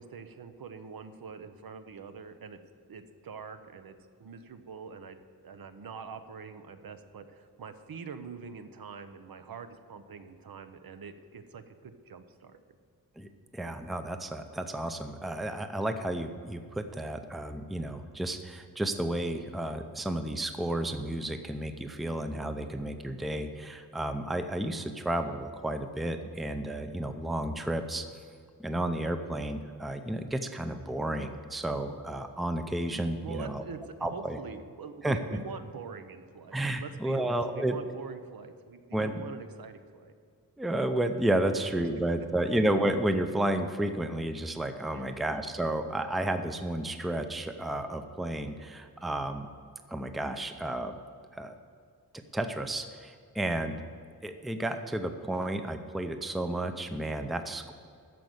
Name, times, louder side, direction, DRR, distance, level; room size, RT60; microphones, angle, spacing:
voice 1, 0.0-2.6 2.9-3.9 4.2-5.2 5.4-12.6 33.2-40.1 42.2-42.3 44.9-45.2, right 5 dB, 70° right, 9 dB, 0.8 m, -44 dB
voice 2, 13.2-28.0 28.6-33.6 34.0-34.4 35.0-35.2 36.5-37.8 38.9-39.2 40.6-49.5 49.9-51.0 51.3-51.5 52.3-53.8 54.2-57.7, right 1 dB, ahead, 7 dB, 0.5 m, -32 dB
13.5 x 5.3 x 7.8 m, 2.3 s
wide cardioid pair, 170°, 37 cm